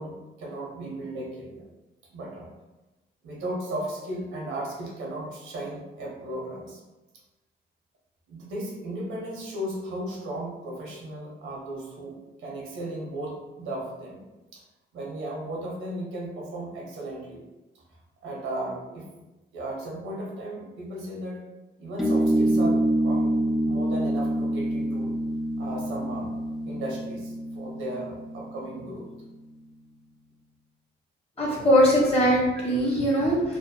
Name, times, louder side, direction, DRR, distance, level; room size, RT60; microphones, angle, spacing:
voice 1, 0.0-1.7 2.1-2.5 3.2-6.8 8.3-14.2 14.5-14.6 14.9-17.4 18.2-19.1 19.5-21.5 21.8-23.4 23.6-25.1 25.6-26.3 26.6-29.1, right 1 dB, 85° right, -2 dB, 0.8 m, -35 dB
sound 1, 22.0-28.9, right 1 dB, ahead, 0.4 m, -26 dB
voice 2, 31.4-33.6, equal, 30° left, -3 dB, 1.0 m, -21 dB
2.6 x 2.1 x 2.6 m, 1.1 s
cardioid pair, 90°, 20 cm